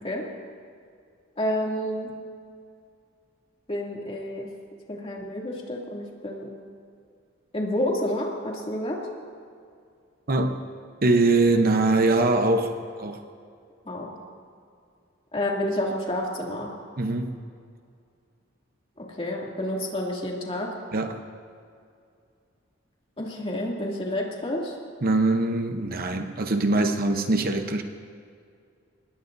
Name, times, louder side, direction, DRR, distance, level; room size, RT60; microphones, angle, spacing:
voice 1, 1.4-2.1 3.7-4.5 4.9-6.5 7.5-9.0 13.8-14.1 15.3-16.7 19.0-20.7 23.2-24.7, left 1 dB, 30° left, -2 dB, 2.7 m, -29 dB
voice 2, 10.3-10.6 11.0-13.2 17.0-17.4 20.9-21.2 25.0-27.8, right 2 dB, 50° right, 6 dB, 0.9 m, -22 dB
24.0 x 20.5 x 2.7 m, 2.3 s
head